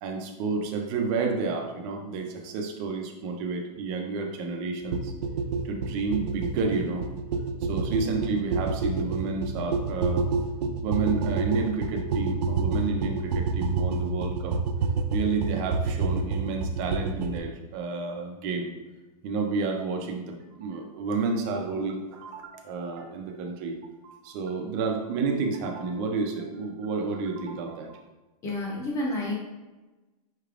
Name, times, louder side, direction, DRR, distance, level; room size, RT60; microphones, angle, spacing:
voice 1, 0.0-5.1 5.6-7.1 7.7-10.3 10.8-14.5 15.1-18.7 19.2-28.0, right 4 dB, 25° right, 2 dB, 0.4 m, -30 dB
sound 1, 4.9-17.4, right 4 dB, 85° right, 0.5 m, -28 dB
voice 2, 28.4-29.3, left 1 dB, 15° left, -2 dB, 0.8 m, -29 dB
5.7 x 3.3 x 2.4 m, 1.1 s
supercardioid pair, 170°, 20 cm